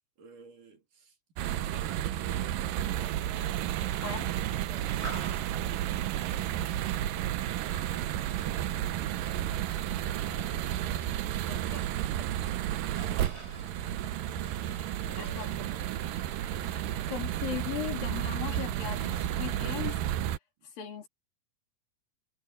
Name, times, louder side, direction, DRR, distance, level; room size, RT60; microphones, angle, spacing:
voice 1, 0.2-1.2 1.5-3.4 4.5-6.9 15.0-16.3, right 6 dB, 55° right, 4.3 m, -53 dB
Human group actions, 1.4-20.0, right 2 dB, 15° right, 4.3 m, -48 dB
sound 1, 1.4-20.4, right 12 dB, 70° right, 2.3 m, -32 dB
voice 2, 11.5-11.8 15.1-15.5 16.7-20.0 20.8-21.1, left 10 dB, 65° left, 4.8 m, -38 dB
omnidirectional pair, 4.4 m